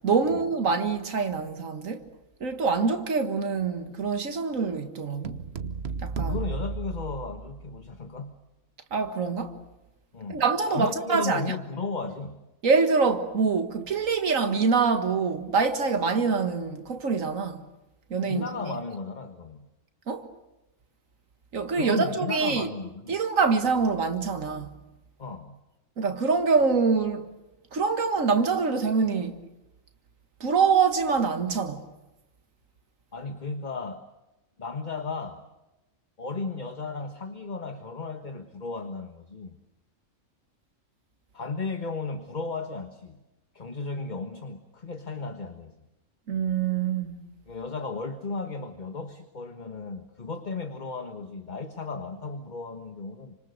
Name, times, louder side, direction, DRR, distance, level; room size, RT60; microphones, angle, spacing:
voice 1, 0.0-2.0 2.4-5.4 6.0-6.4 8.9-9.6 10.3-11.4 12.6-17.6 18.1-18.5 20.1-20.3 21.5-22.7 23.1-24.7 26.0-27.3 27.7-29.4 30.4-31.9 46.3-47.3, right 5 dB, 85° right, 2.1 m, -25 dB
sound 1, 5.2-7.8, right 4 dB, 55° right, 1.3 m, -33 dB
voice 2, 6.2-8.4 10.1-10.4 10.7-12.4 18.2-19.7 21.7-23.1 25.2-25.6 33.1-34.0 34.6-35.4 36.2-39.6 41.3-43.2 43.5-45.7 47.5-53.3, left 4 dB, 35° left, 1.5 m, -35 dB
29.0 x 26.5 x 6.6 m
omnidirectional pair, 1.3 m